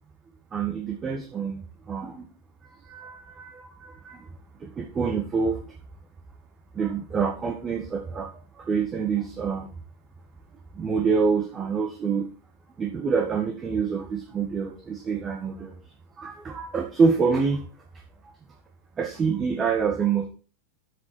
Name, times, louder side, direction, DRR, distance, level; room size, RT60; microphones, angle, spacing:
voice 1, 0.5-2.3 2.8-4.3 4.6-5.6 6.7-8.3 8.6-9.7 10.7-12.3 12.8-15.7 16.2-17.6 19.0-20.3, right 5 dB, 20° right, 2 dB, 1.7 m, -26 dB
10.0 x 8.7 x 4.4 m, 0.38 s
figure-of-eight pair, 90°, 0 cm